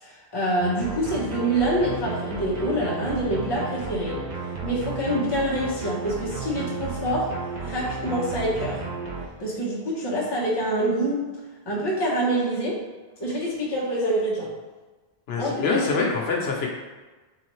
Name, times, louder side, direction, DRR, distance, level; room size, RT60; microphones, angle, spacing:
voice 1, 0.0-4.2 4.6-7.3 7.6-8.8 9.4-11.3 11.7-12.8 13.2-14.5 15.4-15.5, right 1 dB, 25° left, -5 dB, 0.8 m, -26 dB
sound 1, 0.6-9.3, right 4 dB, 50° right, 0.6 m, -33 dB
voice 2, 15.3-16.7, left 4 dB, 75° left, -1 dB, 0.9 m, -24 dB
3.8 x 3.1 x 3.0 m, 1.3 s
omnidirectional pair, 1.1 m